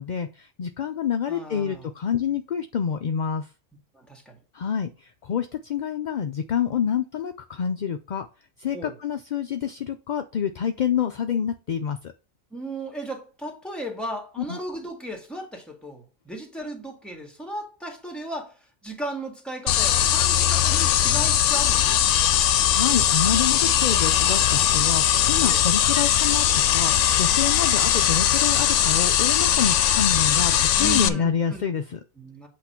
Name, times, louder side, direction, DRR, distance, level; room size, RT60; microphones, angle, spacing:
voice 1, 0.0-3.5 4.5-8.3 8.6-12.1 14.5-14.6 22.3-26.5 26.7-32.0, left 7 dB, 55° left, 0.5 m, -27 dB
voice 2, 1.3-1.9 3.9-4.4 8.7-9.0 12.5-22.2 25.5-25.6 30.8-31.6 32.2-32.5, right 1 dB, ahead, 1.9 m, -36 dB
sound 1, 19.7-31.1, left 10 dB, 75° left, 0.9 m, -20 dB
8.4 x 3.0 x 5.7 m
omnidirectional pair, 1.3 m